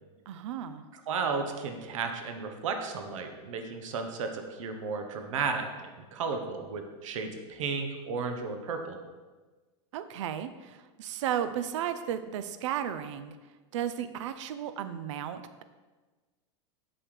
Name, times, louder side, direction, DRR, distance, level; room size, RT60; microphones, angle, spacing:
voice 1, 0.3-0.8 9.9-13.3 13.7-15.6, right 9 dB, 70° right, 11 dB, 0.5 m, -34 dB
voice 2, 1.1-9.0, right 5 dB, 85° right, 5 dB, 1.1 m, -34 dB
7.8 x 7.7 x 3.3 m, 1.3 s
supercardioid pair, 175°, 16 cm